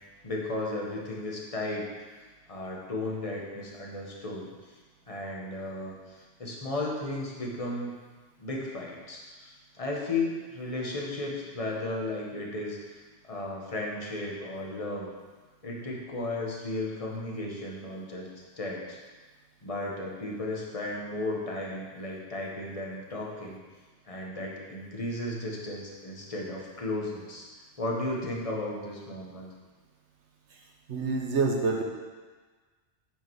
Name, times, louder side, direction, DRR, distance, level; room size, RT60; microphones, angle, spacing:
voice 1, 0.2-1.9 2.5-4.8 5.1-7.9 8.4-15.1 15.6-18.3 18.6-19.0 19.6-23.6 24.1-27.4 27.8-29.5, left 2 dB, 30° left, -2 dB, 1.4 m, -34 dB
voice 2, 30.9-31.8, right 4 dB, 75° right, 1 dB, 1.4 m, -27 dB
8.9 x 5.2 x 4.8 m, 1.4 s
omnidirectional pair, 1.2 m